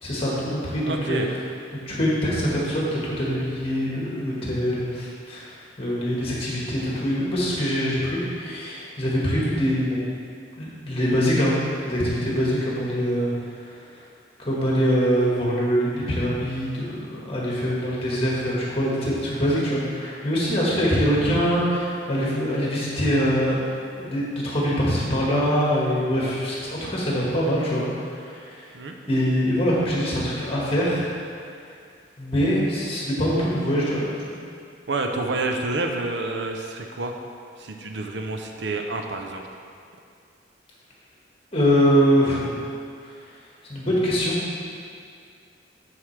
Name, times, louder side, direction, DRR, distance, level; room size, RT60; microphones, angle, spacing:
voice 1, 0.0-1.2 1.9-5.5 5.8-10.0 10.6-13.3 14.4-23.6 24.0-28.6 29.1-31.1 32.2-34.1 41.5-42.6 43.7-44.4, equal, 30° left, -6 dB, 1.6 m, -23 dB
voice 2, 0.9-1.3 28.7-28.9 34.9-37.1 37.6-39.4, right 2 dB, 65° right, 3 dB, 0.6 m, -28 dB
9.4 x 4.7 x 3.3 m, 2.3 s
head